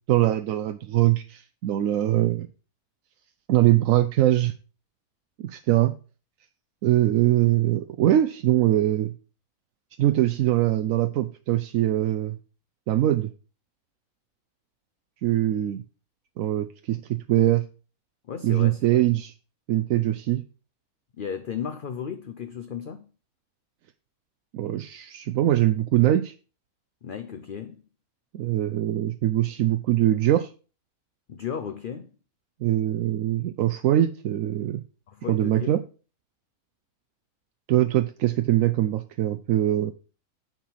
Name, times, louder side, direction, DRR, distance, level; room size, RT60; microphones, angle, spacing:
voice 1, 0.1-2.5 3.5-4.5 5.4-6.0 6.8-9.1 10.0-12.4 12.9-13.3 15.2-15.8 16.4-17.6 18.4-19.3 19.7-20.4 24.5-26.3 28.3-30.5 32.6-34.8 35.3-35.8 37.7-39.9, right 13 dB, 70° right, 0.9 m, -22 dB
voice 2, 18.3-19.1 21.2-23.1 27.0-27.8 31.3-32.1 35.1-35.8, left 7 dB, 55° left, 0.6 m, -35 dB
9.1 x 4.5 x 5.6 m
omnidirectional pair, 1.6 m